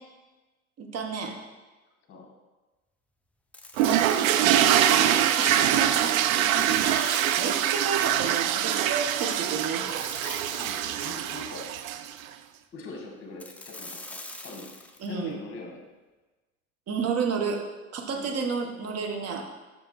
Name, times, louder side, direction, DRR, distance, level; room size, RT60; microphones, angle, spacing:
voice 1, 0.8-1.3 4.6-6.1 6.8-9.8 15.0-15.4 16.9-17.6 17.9-19.4, right 5 dB, 35° right, 3 dB, 1.3 m, -31 dB
sound 1, 3.5-4.9 5.6-8.1 9.9-11.6 13.4-15.1, left 2 dB, 5° left, 0.4 m, -44 dB
voice 2, 3.8-4.6 5.9-6.9 10.5-11.7 12.7-14.7 15.1-15.8 18.1-18.4, left 3 dB, 30° left, 1 dB, 2.1 m, -43 dB
sound 2, 3.8-12.2, right 11 dB, 70° right, 0.6 m, -24 dB
6.8 x 6.2 x 4.3 m, 1.2 s
hypercardioid pair, 85°, 43 cm